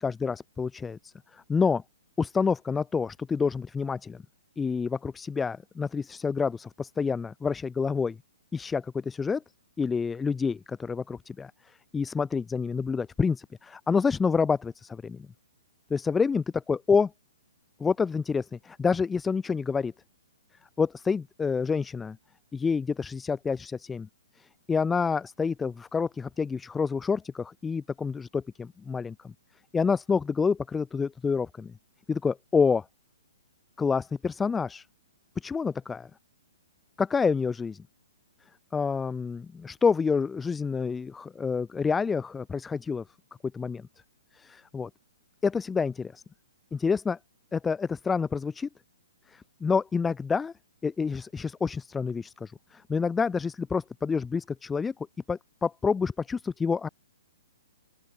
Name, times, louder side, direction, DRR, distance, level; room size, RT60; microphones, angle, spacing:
voice 1, 0.0-1.8 2.2-4.2 4.6-8.2 8.5-9.4 9.8-11.5 11.9-15.3 15.9-17.1 17.8-19.9 20.8-22.2 22.5-24.1 24.7-29.3 29.7-31.7 32.1-32.8 33.8-34.9 35.4-36.1 37.0-37.8 38.7-43.0 43.5-43.8 44.4-44.9 45.4-46.2 46.7-47.2 47.5-48.7 49.3-50.5 50.8-54.9 55.3-56.9, left 5 dB, 10° left, 0.7 m, -28 dB
open air
figure-of-eight pair, 120°, 0 cm